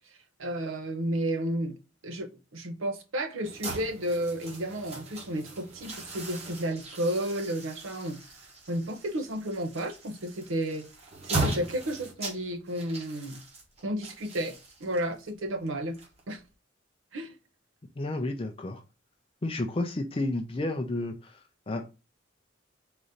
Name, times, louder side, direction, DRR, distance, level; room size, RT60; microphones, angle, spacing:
voice 1, 0.4-1.8 2.0-2.3 2.5-8.2 8.7-10.9 11.2-13.4 13.8-14.5 14.8-16.0 16.3-16.4 17.1-17.4, right 1 dB, 75° right, 0.8 m, -32 dB
sound 1, 3.4-16.5, right 2 dB, 30° right, 1.2 m, -38 dB
voice 2, 18.0-18.8 19.4-21.4 21.7-21.9, left 2 dB, 30° left, 0.5 m, -31 dB
4.0 x 2.7 x 4.9 m
head